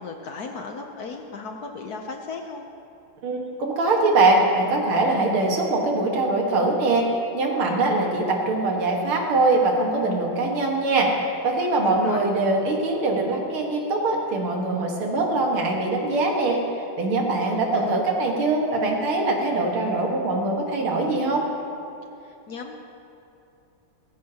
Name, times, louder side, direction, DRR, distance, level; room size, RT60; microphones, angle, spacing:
voice 1, 0.0-2.7 11.8-12.2 17.5-18.0 22.2-22.7, left 4 dB, 60° left, 3 dB, 1.0 m, -36 dB
voice 2, 3.2-7.0 7.3-11.1 11.4-16.6 17.0-21.5, right 2 dB, 90° right, 0 dB, 2.5 m, -22 dB
17.5 x 15.0 x 2.9 m, 2.8 s
omnidirectional pair, 2.3 m